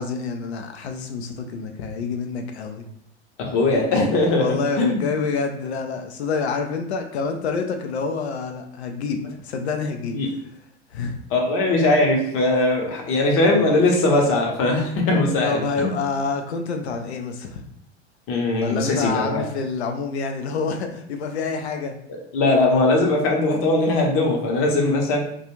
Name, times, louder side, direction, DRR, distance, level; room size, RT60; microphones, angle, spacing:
voice 1, 0.0-2.8 4.4-10.3 10.9-11.2 13.5-13.6 15.4-17.6 18.6-21.9, left 4 dB, 75° left, 5 dB, 0.5 m, -27 dB
voice 2, 3.4-5.0 10.1-10.3 11.3-15.9 18.3-19.4 22.3-25.2, left 2 dB, 40° left, 0 dB, 0.8 m, -20 dB
2.4 x 2.3 x 2.9 m, 0.69 s
figure-of-eight pair, 90°, 33 cm